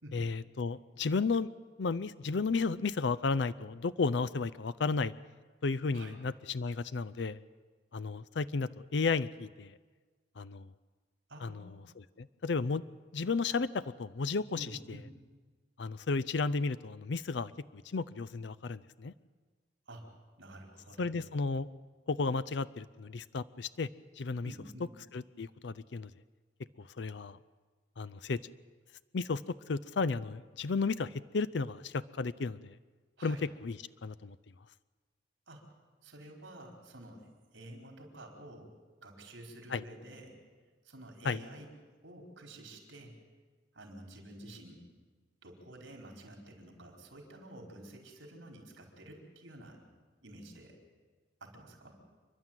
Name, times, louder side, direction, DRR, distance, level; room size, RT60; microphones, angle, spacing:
voice 1, 0.1-1.5 1.8-5.1 5.6-7.4 7.9-9.7 10.4-10.7 11.4-11.6 12.2-12.8 13.1-14.7 15.8-19.1 21.0-21.7 22.1-23.9 24.2-24.5 25.1-26.1 26.8-27.4 28.0-28.4 29.1-29.4 29.7-32.8 33.2-33.4 33.6-33.8 34.0-34.4 39.7-39.8 41.2-41.4, left 4 dB, 65° left, 16 dB, 0.5 m, -33 dB
voice 2, 11.3-11.8 14.5-15.1 19.9-20.1 20.4-21.2 24.4-24.9 33.2-33.4 35.5-35.7 36.0-38.7 39.0-40.4 40.8-41.7 42.0-43.1 43.7-44.9 45.4-49.8 50.2-50.7 51.4-52.0, right 1 dB, 85° right, 1 dB, 4.8 m, -50 dB
28.5 x 11.5 x 9.1 m, 1.4 s
head